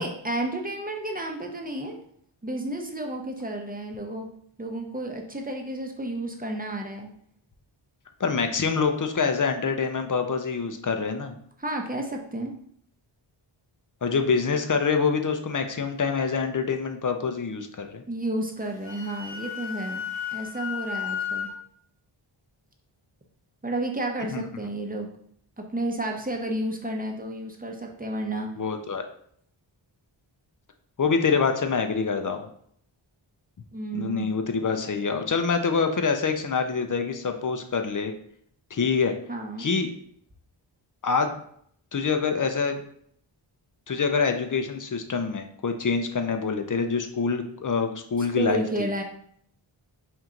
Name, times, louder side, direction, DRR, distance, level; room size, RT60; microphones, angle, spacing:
voice 1, 0.0-2.0 2.4-4.3 4.6-7.1 11.6-12.5 18.1-21.5 23.6-25.1 25.6-28.5 33.7-34.3 39.3-39.7 48.4-49.0, right 1 dB, 20° right, 2 dB, 0.7 m, -31 dB
voice 2, 8.2-11.4 14.0-18.0 24.3-24.4 28.6-29.1 31.0-32.5 33.9-38.1 38.7-39.1 39.6-39.9 41.0-41.4 41.9-42.8 43.9-48.9, left 5 dB, 40° left, 6 dB, 0.6 m, -26 dB
Wind instrument woodwind instrument, 18.6-21.5, left 8 dB, 60° left, 1.2 m, -33 dB
4.5 x 2.7 x 3.7 m, 0.66 s
wide cardioid pair, 75°, 48 cm